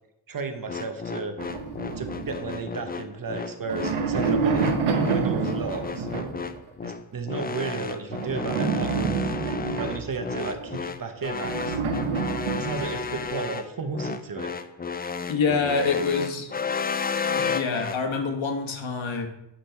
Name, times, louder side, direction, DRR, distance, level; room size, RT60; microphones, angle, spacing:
voice 1, 0.3-1.4 2.0-4.6 5.1-6.1 6.8-9.2 9.8-11.8 12.5-14.5, right 4 dB, 45° right, 7 dB, 1.0 m, -33 dB
sound 1, 0.7-18.0, left 5 dB, 25° left, 0.3 m, -32 dB
sound 2, 1.4-3.0 3.5-6.6 8.1-10.7 11.4-13.3, right 5 dB, 90° right, 1.0 m, -28 dB
voice 2, 15.3-16.5 17.3-19.3, left 4 dB, 70° left, 5 dB, 1.3 m, -26 dB
8.8 x 4.9 x 4.6 m, 0.90 s
wide cardioid pair, 95°, 48 cm